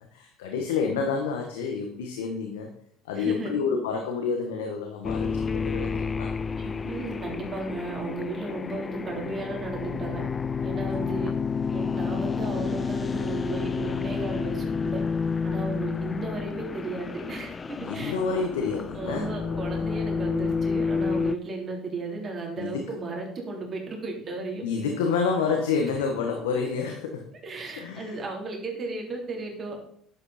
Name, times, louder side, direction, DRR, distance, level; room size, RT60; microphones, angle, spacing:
voice 1, 0.1-2.7 3.0-6.3 11.0-11.1 17.8-19.8 22.6-22.8 24.6-27.3 27.8-28.1, left 5 dB, 90° left, 3 dB, 1.3 m, -29 dB
voice 2, 3.1-3.5 6.6-10.2 10.6-11.3 11.7-15.0 15.4-18.1 19.0-24.7 27.4-29.8, right 3 dB, 40° right, 0 dB, 3.5 m, -34 dB
sound 1, 5.0-21.4, left 5 dB, 30° left, 0.5 m, -30 dB
11.0 x 8.2 x 4.3 m, 0.64 s
hypercardioid pair, 75°, 0 cm